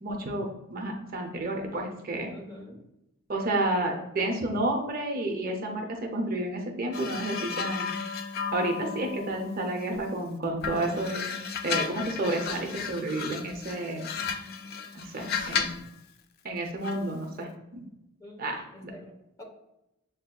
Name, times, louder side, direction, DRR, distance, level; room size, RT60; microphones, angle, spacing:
voice 1, 0.0-2.3 3.3-7.9 8.5-11.2 11.6-14.1 14.9-15.7 16.4-17.9 18.4-18.9, right 1 dB, 45° right, 2 dB, 0.5 m, -31 dB
voice 2, 2.3-2.8 18.2-19.4, left 1 dB, 15° left, -1 dB, 0.8 m, -46 dB
sound 1, 6.9-10.2 10.6-15.9 16.8-17.1, left 6 dB, 45° left, 0.3 m, -34 dB
6.8 x 2.6 x 2.2 m, 0.89 s
head